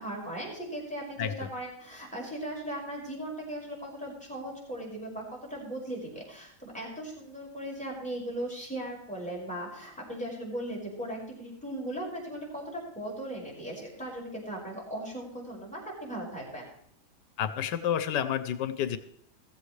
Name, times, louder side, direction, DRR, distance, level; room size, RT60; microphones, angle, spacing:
voice 1, 0.0-16.7, right 1 dB, 5° left, -4 dB, 5.3 m, -38 dB
voice 2, 1.2-1.5 17.4-19.0, left 9 dB, 90° left, 11 dB, 1.4 m, -30 dB
15.0 x 15.0 x 3.3 m, 0.67 s
omnidirectional pair, 1.8 m